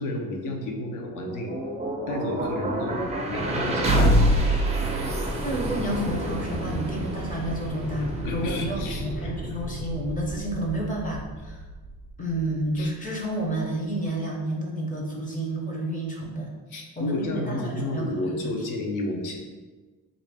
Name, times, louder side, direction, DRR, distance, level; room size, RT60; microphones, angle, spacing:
voice 1, 0.0-1.5 2.1-4.7 8.0-9.3 12.8-12.9 16.7-19.4, left 2 dB, 60° left, 2 dB, 0.7 m, -32 dB
sound 1, 0.9-12.9, right 1 dB, 20° right, 0.4 m, -27 dB
voice 2, 5.4-11.6 12.2-16.5 17.0-18.5, right 1 dB, 25° left, -2 dB, 0.6 m, -30 dB
3.2 x 2.5 x 3.4 m, 1.3 s
cardioid pair, 150°, 35 cm